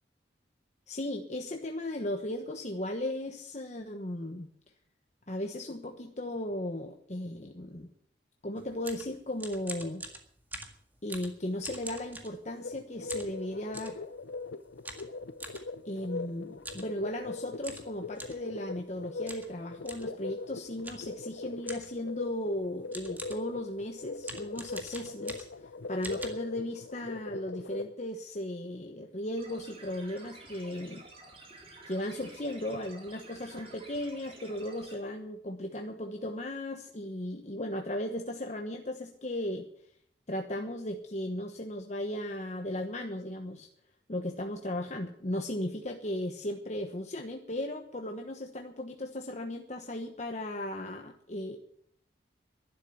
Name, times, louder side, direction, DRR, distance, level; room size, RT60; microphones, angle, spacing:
voice 1, 0.9-4.5 5.3-7.9 8.4-10.0 11.0-14.0 15.8-25.5 25.9-31.0 31.9-39.6 40.3-43.7 44.1-51.6, left 1 dB, 40° left, 3 dB, 1.1 m, -36 dB
sound 1, 8.6-12.7 13.1-14.0 14.8-15.6 16.6-16.9 17.2-17.3 17.6-18.5 19.3-19.5 19.8-20.1 20.8-21.2 21.7-22.0 22.6-22.7 22.9-23.5 24.2-25.7 26.0-26.3, right 2 dB, 10° right, 1.8 m, -43 dB
sound 2, 12.6-27.9, left 3 dB, 85° left, 0.7 m, -41 dB
sound 3, 29.4-34.9, right 2 dB, 30° right, 3.9 m, -51 dB
12.0 x 11.5 x 8.3 m, 0.66 s
head